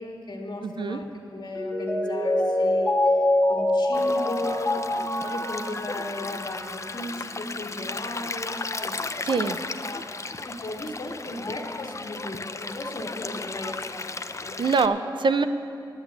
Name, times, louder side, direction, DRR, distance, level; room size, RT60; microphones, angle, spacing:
voice 1, 0.0-3.1 3.5-10.1 10.4-14.6, left 2 dB, 60° left, 1 dB, 1.7 m, -36 dB
voice 2, 0.6-1.0 9.2-9.6 14.6-15.4, right 4 dB, 70° right, 10 dB, 0.5 m, -24 dB
Mallet percussion, 1.5-7.1 7.4-7.5, left 1 dB, 15° left, 1.6 m, -25 dB
Stream, 3.9-14.9, left 3 dB, 35° left, 0.4 m, -35 dB
10.5 x 8.1 x 8.0 m, 2.5 s
wide cardioid pair, 65°, 8 cm